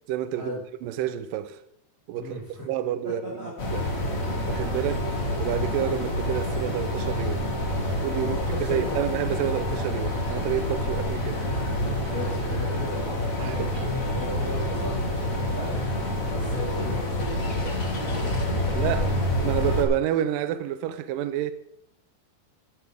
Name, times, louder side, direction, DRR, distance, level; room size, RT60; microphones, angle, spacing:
voice 1, 0.1-0.5 0.8-1.6 2.1-2.4 2.7-3.8 4.5-5.0 5.4-7.4 7.9-8.4 8.7-11.3 13.4-13.8 18.7-19.1 19.4-21.5, right 11 dB, 85° right, 1.9 m, -29 dB
voice 2, 2.1-2.6 3.2-3.5 4.1-4.3 4.8-5.0 8.2-9.0 10.8-11.1 12.0-15.0 15.4-15.8 16.2-19.1, left 1 dB, 20° right, 3.9 m, -37 dB
sound 1, 3.6-19.8, left 1 dB, 45° left, 1.1 m, -27 dB
12.0 x 12.0 x 3.5 m
omnidirectional pair, 4.6 m